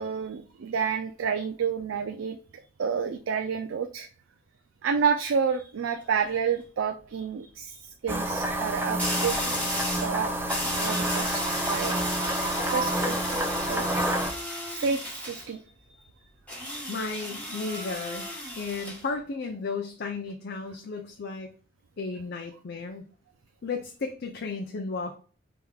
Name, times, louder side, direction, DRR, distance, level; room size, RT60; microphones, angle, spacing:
voice 1, 0.0-2.4 2.8-4.1 4.8-9.4 10.0-10.3 10.8-11.9 12.7-13.8 14.7-15.6, right 6 dB, 85° right, 6 dB, 0.4 m, -29 dB
sound 1, 5.8-6.2 9.0-10.1 10.5-15.5 16.5-19.0, left 1 dB, 10° left, 1.1 m, -34 dB
sound 2, 8.1-14.3, right 1 dB, 10° right, 0.5 m, -29 dB
voice 2, 16.9-21.5 22.0-23.0 23.6-25.2, left 4 dB, 60° left, 3 dB, 0.5 m, -34 dB
4.7 x 3.5 x 2.3 m, 0.40 s
head